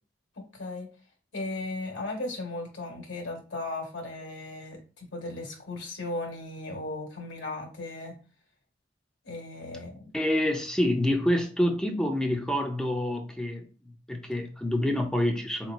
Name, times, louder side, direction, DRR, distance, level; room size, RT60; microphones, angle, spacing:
voice 1, 0.5-0.9 1.3-8.1 9.2-10.0, left 2 dB, 80° left, 1.4 m, -36 dB
voice 2, 10.1-15.7, left 1 dB, 5° left, 0.4 m, -27 dB
4.3 x 3.0 x 2.5 m
head